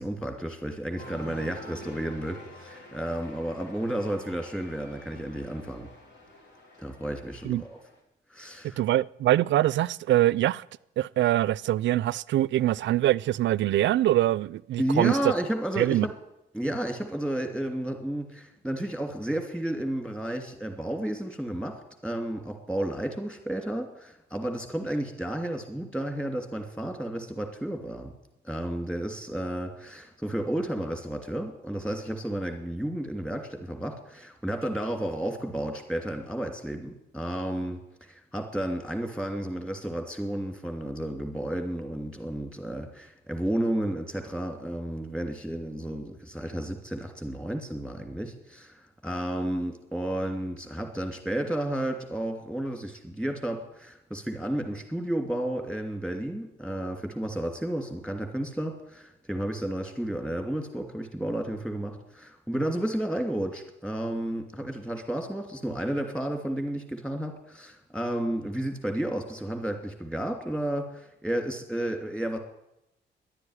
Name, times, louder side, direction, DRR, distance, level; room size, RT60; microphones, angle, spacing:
voice 1, 0.0-5.9 6.8-7.8 8.3-8.8 14.8-16.1 16.5-21.7 22.0-28.1 28.4-37.8 38.1-72.4, right 1 dB, 5° left, 2.8 m, -32 dB
Cheering, 1.0-8.0, left 1 dB, 60° left, 4.1 m, -47 dB
voice 2, 8.8-10.6 11.0-15.3 15.8-16.1, right 14 dB, 70° right, 0.4 m, -24 dB
11.0 x 10.0 x 9.9 m
cardioid pair, 90°, 20 cm